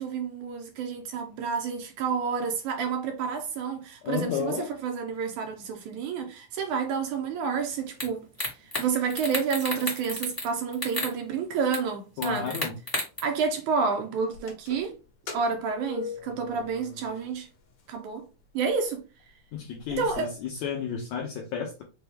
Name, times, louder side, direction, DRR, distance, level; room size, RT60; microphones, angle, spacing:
voice 1, 0.0-4.6 4.8-8.5 8.8-12.6 13.2-14.9 15.3-17.5 17.9-18.3 18.5-19.0 20.0-20.3, right 5 dB, 75° right, 2.0 m, -29 dB
voice 2, 4.0-4.7 12.2-12.8 19.5-21.8, left 7 dB, 80° left, 1.6 m, -32 dB
sound 1, 8.0-8.1 8.4-8.8 9.1-10.5 10.7-11.1 11.7-11.8 12.2-13.2, left 1 dB, 20° left, 0.6 m, -31 dB
sound 2, 14.3-17.5 17.8-17.9 18.7-18.8 19.2-19.3 19.5-20.2, left 7 dB, 60° left, 1.7 m, -41 dB
6.0 x 2.3 x 3.4 m
omnidirectional pair, 3.9 m